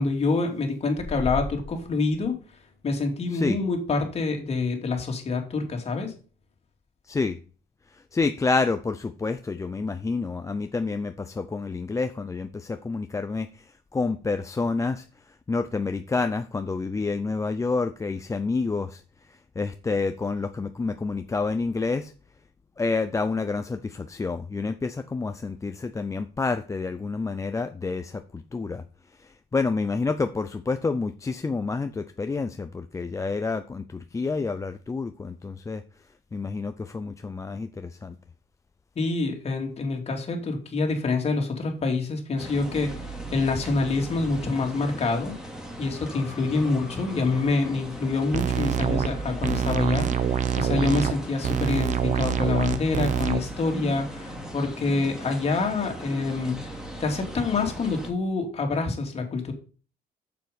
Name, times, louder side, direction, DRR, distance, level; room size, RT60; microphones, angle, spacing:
voice 1, 0.0-2.3 2.8-6.1 39.0-42.9 43.3-45.3 45.8-56.6 57.0-59.5, left 3 dB, 40° left, 2.5 m, -26 dB
voice 2, 7.0-7.4 7.9-19.0 19.3-22.1 22.8-28.8 29.1-35.8 36.3-38.2 46.6-46.8, left 4 dB, 20° left, 0.5 m, -29 dB
sound 1, 42.4-58.1, right 1 dB, 5° right, 2.6 m, -38 dB
sound 2, 48.3-49.1 49.4-51.1 51.4-53.4, right 9 dB, 45° right, 0.8 m, -25 dB
7.6 x 7.1 x 5.2 m
cardioid pair, 110°, 17 cm